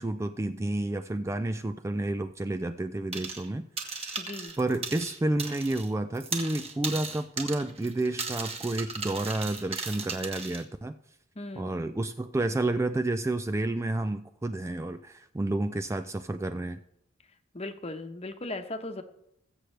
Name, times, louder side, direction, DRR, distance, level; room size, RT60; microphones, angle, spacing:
voice 1, 0.0-3.6 3.9-4.2 4.6-11.0 11.6-16.8, right 2 dB, 15° right, 10 dB, 0.3 m, -30 dB
sound 1, 3.1-3.5 3.8-5.9 6.1-10.6, right 4 dB, 30° right, 1.5 m, -36 dB
voice 2, 4.2-4.5 11.3-11.7 17.5-19.0, left 2 dB, 30° left, 7 dB, 1.0 m, -37 dB
20.0 x 7.9 x 3.3 m, 0.79 s
head